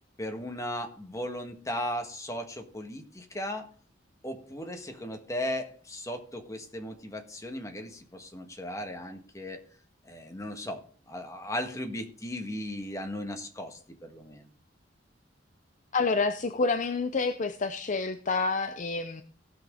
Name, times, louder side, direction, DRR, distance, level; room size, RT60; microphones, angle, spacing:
voice 1, 0.2-3.7 4.2-9.6 10.0-14.5, left 1 dB, 15° left, 4 dB, 1.5 m, -37 dB
voice 2, 15.9-19.2, left 4 dB, 45° left, 9 dB, 0.6 m, -28 dB
17.0 x 6.1 x 3.7 m, 0.43 s
head